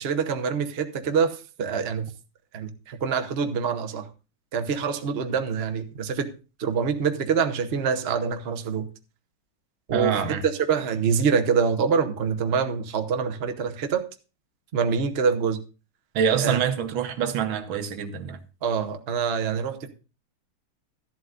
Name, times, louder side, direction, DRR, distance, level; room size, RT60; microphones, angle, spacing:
voice 1, 0.0-2.1 2.5-4.1 4.5-6.3 6.6-8.9 9.9-10.2 10.7-14.0 14.7-15.6 16.4-16.6 18.6-19.9, right 6 dB, 45° right, 0.8 m, -25 dB
voice 2, 9.9-10.4 16.1-18.4, right 7 dB, 70° right, 1.7 m, -25 dB
13.5 x 11.0 x 2.5 m
omnidirectional pair, 2.4 m